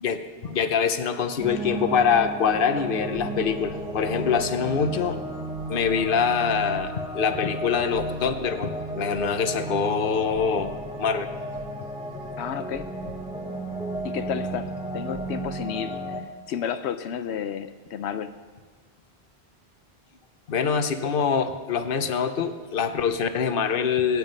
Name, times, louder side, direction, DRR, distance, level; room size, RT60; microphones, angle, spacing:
voice 1, 0.0-5.2 5.7-10.7 11.0-11.3 20.5-24.2, left 6 dB, 60° left, 9 dB, 1.0 m, -24 dB
sound 1, 1.4-16.2, right 1 dB, 5° right, 1.0 m, -33 dB
voice 2, 12.4-12.9 14.0-16.0 16.5-18.3, left 8 dB, 85° left, 10 dB, 0.9 m, -31 dB
22.0 x 9.3 x 5.4 m, 1.5 s
omnidirectional pair, 1.1 m